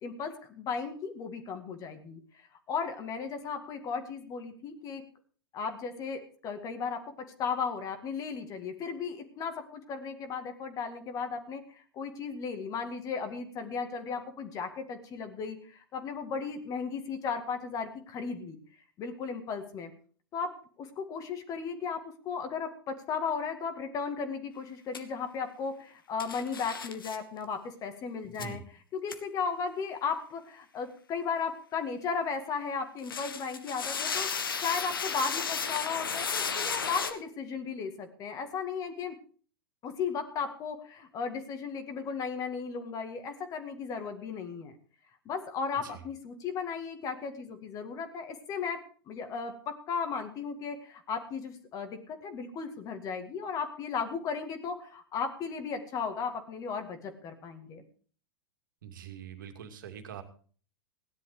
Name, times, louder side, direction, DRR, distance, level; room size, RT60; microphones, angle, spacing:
voice 1, 0.0-5.0 5.5-18.6 19.0-19.9 20.3-28.6 28.9-34.3 34.6-39.2 39.8-44.7 45.3-48.8 49.1-57.8, left 5 dB, 30° left, 7 dB, 2.0 m, -35 dB
sound 1, 24.9-25.0 26.2-27.2 28.4-28.5 29.1-29.2 33.0-37.1, left 6 dB, 70° left, 1.6 m, -33 dB
voice 2, 58.8-60.2, right 7 dB, 60° right, 6 dB, 2.4 m, -43 dB
17.0 x 10.5 x 5.0 m, 0.43 s
figure-of-eight pair, 100°, 12 cm